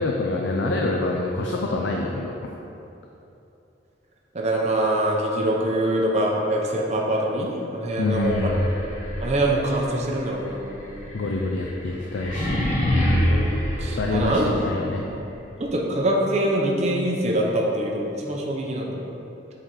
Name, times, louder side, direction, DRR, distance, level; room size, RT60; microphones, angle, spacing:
voice 1, 0.0-2.3 8.0-8.7 11.1-12.6 14.0-15.0, left 2 dB, 75° left, 0 dB, 0.5 m, -25 dB
voice 2, 4.3-8.4 9.2-11.1 13.3-14.5 15.1-15.2 15.6-19.0, right 1 dB, 35° right, -2 dB, 0.7 m, -24 dB
sound 1, 8.1-14.9, equal, 40° left, 1.3 m, -27 dB
7.8 x 4.0 x 4.3 m, 2.8 s
head